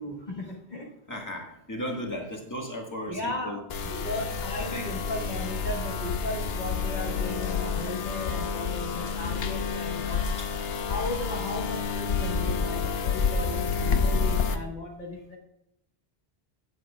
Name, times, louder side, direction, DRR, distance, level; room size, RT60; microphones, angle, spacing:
voice 1, 0.0-0.9 3.1-3.6 3.9-10.2 10.9-15.4, left 2 dB, 45° left, -2 dB, 1.4 m, -36 dB
voice 2, 1.1-3.6 3.9-4.0 4.6-4.9 13.1-13.3, equal, 20° left, 0 dB, 1.6 m, -36 dB
sound 1, 3.7-14.6, left 5 dB, 80° left, 1.0 m, -29 dB
17.0 x 7.4 x 2.4 m, 0.80 s
omnidirectional pair, 1.0 m